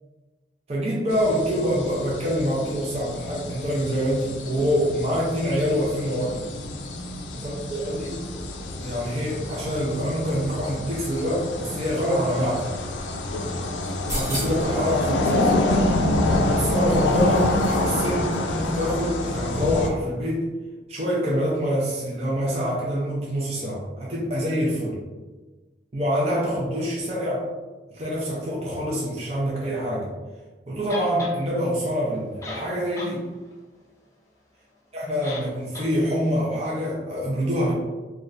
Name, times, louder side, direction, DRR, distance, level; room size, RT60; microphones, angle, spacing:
voice 1, 0.7-6.5 7.4-8.2 8.8-12.7 14.0-15.7 16.5-20.5 20.9-25.0 25.9-27.5 27.9-30.1 30.7-33.3 34.9-37.7, equal, 35° right, -5 dB, 0.5 m, -26 dB
sound 1, 1.1-19.9, left 1 dB, 90° left, 0.4 m, -27 dB
sound 2, 13.8-14.8 16.3-18.0 18.3-18.4, equal, 20° right, 0.8 m, -35 dB
sound 3, 30.9-31.4 32.1-32.2 32.4-33.2 33.5-33.6 35.2-35.5 35.7-35.9, left 2 dB, 15° left, 0.4 m, -35 dB
3.0 x 2.3 x 2.5 m, 1.2 s
head